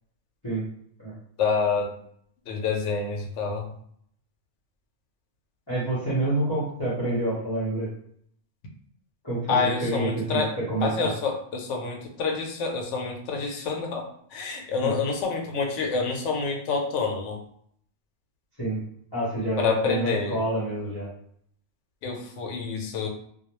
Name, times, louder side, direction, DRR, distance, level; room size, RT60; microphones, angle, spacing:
voice 1, 1.4-1.9 2.5-3.7 9.5-17.4 19.6-20.4 22.0-23.1, left 5 dB, 80° left, 2 dB, 0.9 m, -28 dB
voice 2, 5.7-7.9 9.2-11.1 14.8-14.9 18.6-18.8 19.1-21.1, right 1 dB, 25° left, -11 dB, 0.8 m, -27 dB
2.2 x 2.2 x 3.0 m, 0.66 s
omnidirectional pair, 1.2 m